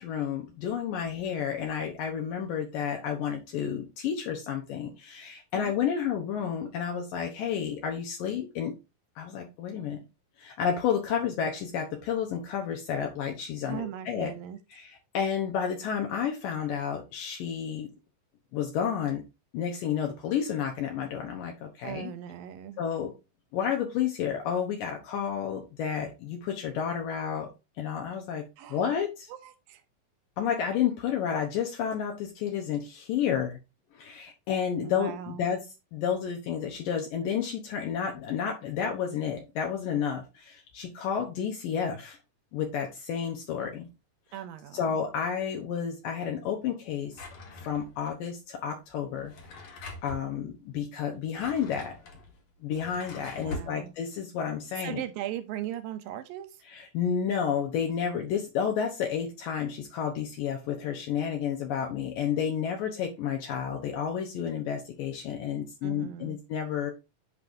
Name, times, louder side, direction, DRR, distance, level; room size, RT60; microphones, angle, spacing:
voice 1, 0.0-8.7 9.2-10.0 10.4-14.3 14.7-17.9 18.5-19.2 19.5-22.1 22.8-23.1 23.5-27.5 27.8-28.4 28.7-29.3 30.4-33.6 33.9-35.6 35.9-42.2 42.5-43.9 44.7-47.2 47.5-51.9 52.6-55.0 56.7-66.9, left 8 dB, 75° left, 2.5 m, -31 dB
voice 2, 13.7-14.6 21.8-22.8 28.6-28.9 29.3-29.8 34.8-35.5 44.3-45.0 53.4-53.9 54.8-56.6 65.8-66.4, right 11 dB, 80° right, 2.3 m, -38 dB
Drawer open or close, 47.1-48.1 49.1-50.3 51.1-53.8, left 2 dB, 55° left, 2.3 m, -42 dB
8.2 x 5.3 x 2.6 m
omnidirectional pair, 4.2 m